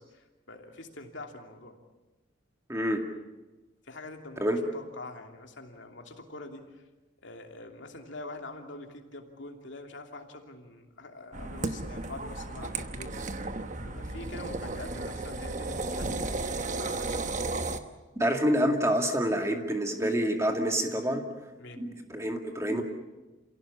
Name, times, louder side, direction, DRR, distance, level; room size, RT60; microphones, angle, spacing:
voice 1, 0.0-1.7 3.8-6.8 7.2-13.1 13.8-16.5 16.8-17.4 21.6-21.9, left 2 dB, 65° left, 3 dB, 2.9 m, -45 dB
voice 2, 2.7-3.1 4.4-4.6 18.2-21.3 21.8-22.8, equal, 15° right, 4 dB, 2.1 m, -27 dB
sound 1, 11.3-17.8, right 2 dB, 35° right, 1.1 m, -34 dB
28.0 x 17.0 x 8.6 m, 1.1 s
head